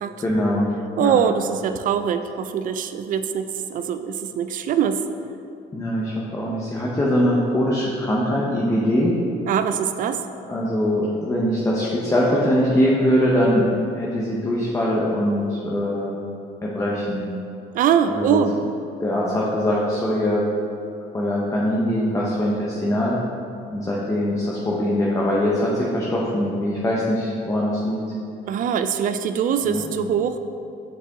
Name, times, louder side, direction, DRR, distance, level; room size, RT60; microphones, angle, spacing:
voice 1, 0.2-0.7 1.0-1.2 5.7-9.1 10.5-16.1 16.6-17.3 18.1-18.4 19.0-20.4 21.1-23.2 23.7-28.0 29.6-29.9, equal, 15° left, -5 dB, 0.8 m, -22 dB
voice 2, 1.0-5.0 9.5-10.2 17.7-18.5 28.5-30.4, right 8 dB, 55° right, 10 dB, 0.4 m, -22 dB
6.8 x 4.7 x 3.6 m, 2.6 s
cardioid pair, 110°, 17 cm